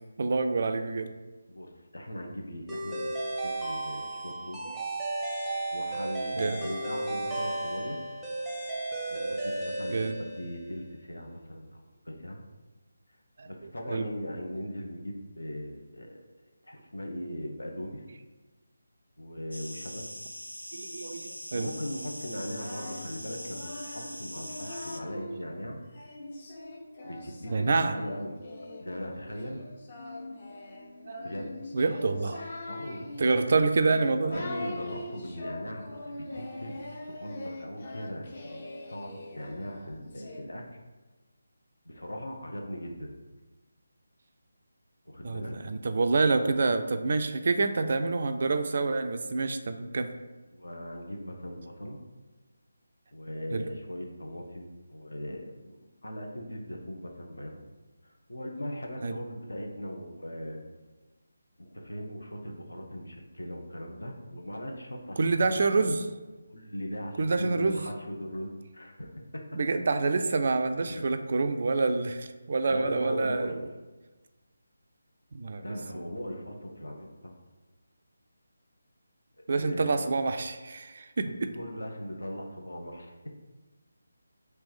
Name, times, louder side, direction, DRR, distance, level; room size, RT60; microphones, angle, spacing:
voice 1, 0.2-1.2 4.7-4.8 6.3-6.6 9.9-10.2 13.4-13.5 13.9-14.0 20.7-21.7 27.5-27.9 31.1-31.2 31.7-32.4 33.2-34.4 45.2-50.1 53.5-53.7 59.0-59.2 65.2-66.0 67.2-67.8 69.5-73.7 75.3-75.6 75.9-76.0 79.5-81.5, right 3 dB, 45° right, 8 dB, 0.3 m, -27 dB
voice 2, 1.5-4.6 5.7-8.0 9.1-12.4 13.4-16.2 16.6-18.0 19.2-20.0 21.5-25.8 27.0-28.4 28.8-29.6 31.2-31.5 32.7-33.1 34.2-40.6 41.8-43.1 45.1-45.5 50.5-52.0 53.1-57.6 58.0-60.6 61.6-65.2 65.6-65.9 66.5-69.6 70.8-71.0 72.7-73.6 75.6-77.4 79.6-80.0 81.5-83.2, equal, 70° left, 2 dB, 0.8 m, -39 dB
sound 1, 2.7-10.8, right 2 dB, ahead, 0.6 m, -34 dB
sound 2, 19.5-25.0, equal, 85° left, 0.4 m, -42 dB
Singing, 22.3-25.4 25.9-40.4, left 2 dB, 35° left, 0.7 m, -42 dB
3.4 x 3.1 x 4.8 m, 1.2 s
figure-of-eight pair, 155°, 0 cm